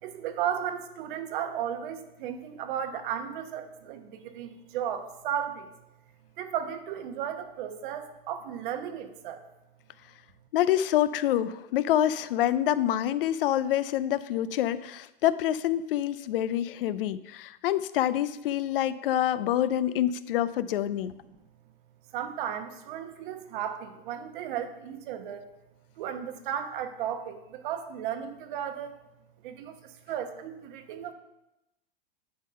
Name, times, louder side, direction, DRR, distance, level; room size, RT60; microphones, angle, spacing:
voice 1, 0.0-5.7 6.4-9.4 21.3-21.4 22.1-25.5 26.0-28.9 29.4-31.1, right 9 dB, 55° right, 7 dB, 1.1 m, -35 dB
voice 2, 10.5-21.1, left 12 dB, 65° left, 16 dB, 0.5 m, -26 dB
9.4 x 3.7 x 5.6 m, 0.91 s
hypercardioid pair, 125°, 30 cm